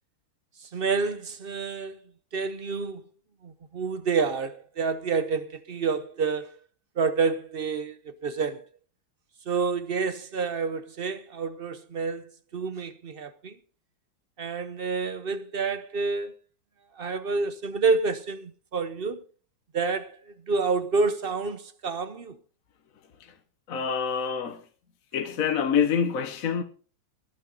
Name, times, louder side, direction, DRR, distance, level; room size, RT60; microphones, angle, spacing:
voice 1, 0.6-2.0 2.3-3.0 3.4-6.5 7.0-8.7 9.5-13.6 14.4-16.3 17.0-19.2 19.7-22.4, right 4 dB, 50° right, 0.6 m, -28 dB
voice 2, 23.7-24.6 25.1-26.6, left 7 dB, 50° left, 1.3 m, -26 dB
20.5 x 9.0 x 3.9 m
omnidirectional pair, 2.1 m